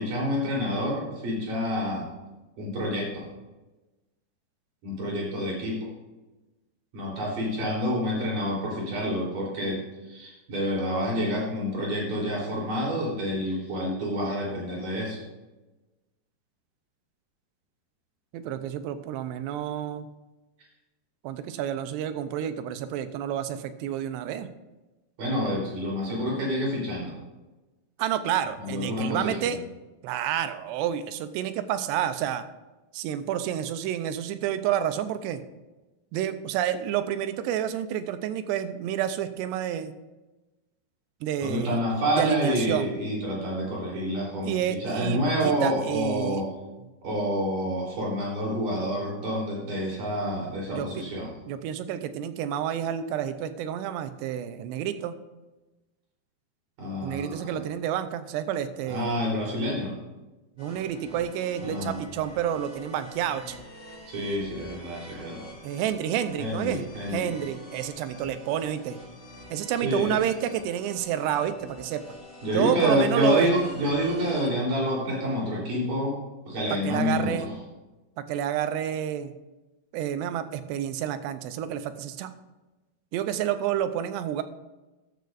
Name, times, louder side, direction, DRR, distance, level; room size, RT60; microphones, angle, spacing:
voice 1, 0.0-2.1 2.6-3.3 4.8-5.9 6.9-15.2 25.2-27.2 28.6-29.6 41.4-46.5 47.0-51.3 56.8-57.6 58.9-60.0 61.6-62.0 64.1-65.5 66.4-67.3 69.8-70.2 72.4-76.2 76.5-77.5, equal, 55° right, -4 dB, 5.1 m, -28 dB
voice 2, 18.3-20.1 21.2-24.5 28.0-29.6 30.0-32.4 32.9-35.4 36.1-39.9 41.2-41.8 42.1-42.9 44.4-46.4 50.7-50.9 51.5-55.2 57.0-59.2 60.6-63.5 65.6-66.8 67.1-69.0 69.5-72.0 72.5-73.5 76.7-77.5 78.2-79.4 79.9-82.3 83.1-84.4, right 10 dB, 85° right, 11 dB, 2.9 m, -29 dB
sound 1, 60.6-74.4, equal, 20° left, 3.6 m, -46 dB
13.5 x 13.0 x 2.6 m, 1.1 s
omnidirectional pair, 4.8 m